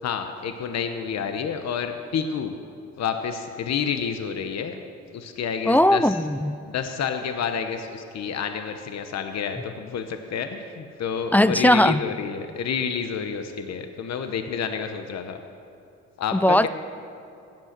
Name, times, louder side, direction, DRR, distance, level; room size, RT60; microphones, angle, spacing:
voice 1, 0.0-2.6 3.0-4.8 5.1-6.1 6.7-15.4 16.2-16.7, left 7 dB, 60° left, 7 dB, 1.0 m, -29 dB
voice 2, 5.7-6.6 11.3-12.0 16.3-16.7, left 1 dB, 5° left, 15 dB, 0.3 m, -18 dB
16.0 x 10.5 x 6.6 m, 2.7 s
cardioid pair, 90°, 30 cm